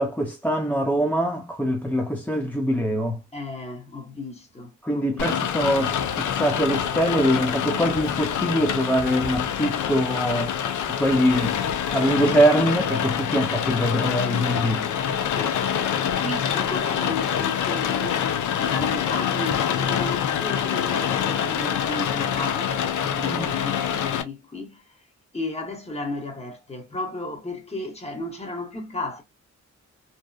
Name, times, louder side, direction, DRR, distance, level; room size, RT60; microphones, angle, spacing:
voice 1, 0.0-3.2 4.8-10.6 11.0-11.6 11.9-14.9 23.3-23.6, equal, 5° left, 0.4 m, -23 dB
voice 2, 3.3-5.7 15.3-18.3 18.5-22.7 23.0-25.0 25.3-29.2, left 2 dB, 20° left, 1.0 m, -34 dB
Rain, 5.2-24.2, left 8 dB, 75° left, 0.5 m, -26 dB
2.7 x 2.1 x 2.3 m
cardioid pair, 75°, 30 cm